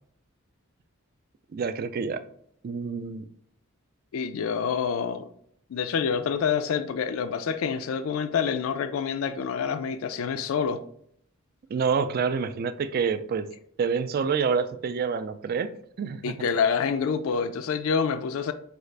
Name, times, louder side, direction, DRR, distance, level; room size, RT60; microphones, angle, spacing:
voice 1, 1.5-2.2 2.6-3.3 11.7-13.5 13.8-15.7 16.0-16.3, right 5 dB, 45° right, 0.3 m, -27 dB
voice 2, 4.1-5.3 5.7-10.8 16.2-18.5, left 6 dB, 70° left, 0.3 m, -27 dB
5.0 x 2.4 x 3.2 m
head